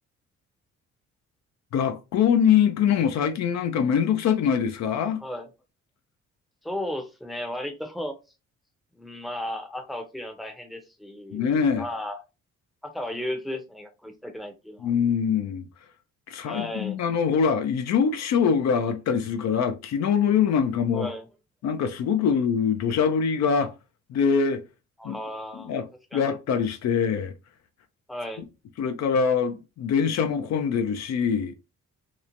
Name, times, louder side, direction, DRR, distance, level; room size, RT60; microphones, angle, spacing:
voice 1, 1.7-5.2 11.3-11.9 14.8-15.7 16.3-21.1 21.6-23.7 24.1-24.6 25.0-25.2 25.6-25.9 26.1-27.3 28.8-31.5, left 7 dB, 60° left, 0.5 m, -23 dB
voice 2, 6.6-8.1 9.0-12.2 12.8-14.9 16.4-17.0 20.9-21.3 25.0-25.7 26.1-26.2 28.1-28.4, left 1 dB, ahead, 0.6 m, -34 dB
3.0 x 2.1 x 2.5 m
cardioid pair, 90°, 30 cm